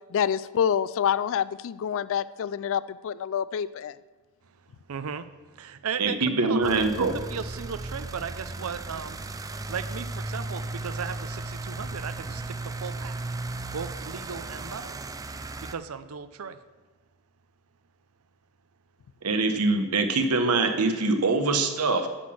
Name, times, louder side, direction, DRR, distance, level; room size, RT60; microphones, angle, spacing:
voice 1, 0.1-3.9, left 8 dB, 60° left, 17 dB, 0.3 m, -27 dB
voice 2, 4.9-9.2 9.7-13.2 13.7-15.0 15.6-16.6, right 6 dB, 70° right, 13 dB, 0.5 m, -36 dB
voice 3, 6.0-7.2 19.2-22.1, right 3 dB, 90° right, 7 dB, 1.0 m, -24 dB
sound 1, 6.6-15.7, right 2 dB, 15° right, 0.3 m, -36 dB
9.7 x 6.2 x 6.2 m, 1.3 s
head